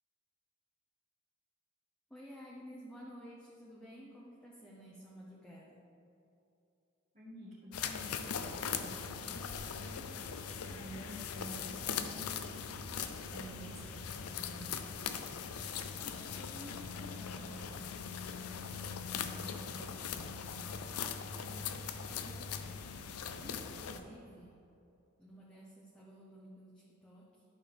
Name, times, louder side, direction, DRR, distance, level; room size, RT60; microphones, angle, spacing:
voice 1, 2.1-5.8 15.9-20.8 21.3-22.8 23.3-24.6 25.2-27.4, equal, 5° left, -6 dB, 0.8 m, -54 dB
voice 2, 7.1-10.0 10.6-12.3 13.3-14.9, equal, 30° right, -10 dB, 1.6 m, -50 dB
sound 1, 7.7-24.0, left 6 dB, 85° left, 0.6 m, -40 dB
11.0 x 6.7 x 3.5 m, 2.8 s
head